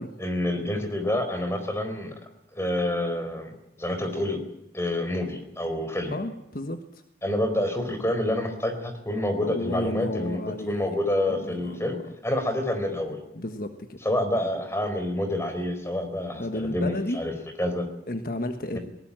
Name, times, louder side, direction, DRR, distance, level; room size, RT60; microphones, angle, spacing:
voice 1, 0.2-2.1 2.5-4.4 4.7-6.1 7.2-10.4 10.7-12.0 12.2-13.2 14.0-17.3 17.6-17.8 18.7-18.8, left 1 dB, 15° left, 7 dB, 4.3 m, -28 dB
voice 2, 6.1-6.8 9.4-11.0 11.3-11.9 13.3-14.0 16.4-17.2 18.1-18.8, left 1 dB, 50° left, 8 dB, 1.4 m, -32 dB
20.5 x 19.0 x 9.0 m, 0.82 s
head